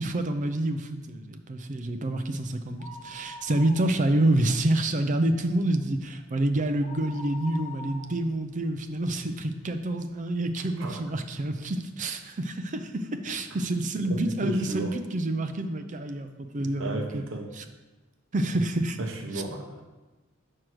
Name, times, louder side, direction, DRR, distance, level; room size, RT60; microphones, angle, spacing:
voice 1, 0.0-17.2 17.6-17.7 18.3-19.0 19.3-19.4, right 1 dB, 40° right, 8 dB, 0.5 m, -28 dB
sound 1, 2.7-4.3 4.6-4.7 5.2-9.6 10.1-10.2 11.0-11.1 11.3-11.4, left 1 dB, 35° left, 1.0 m, -44 dB
voice 2, 14.1-14.9 16.8-17.5 19.0-19.8, right 1 dB, 65° right, 2 dB, 0.8 m, -33 dB
4.9 x 4.6 x 6.1 m, 1.2 s
head